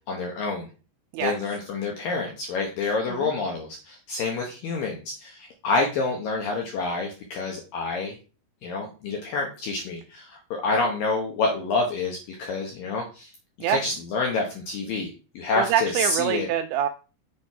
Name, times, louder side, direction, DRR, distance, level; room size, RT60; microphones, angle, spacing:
voice 1, 0.1-0.7 1.2-8.2 8.6-13.3 13.7-15.1 15.4-16.5, left 3 dB, 75° left, 1 dB, 2.1 m, -28 dB
voice 2, 1.1-1.5 2.8-3.3 13.6-13.8 15.6-16.9, right 10 dB, 85° right, 8 dB, 2.5 m, -26 dB
7.1 x 5.2 x 4.6 m, 0.35 s
omnidirectional pair, 5.5 m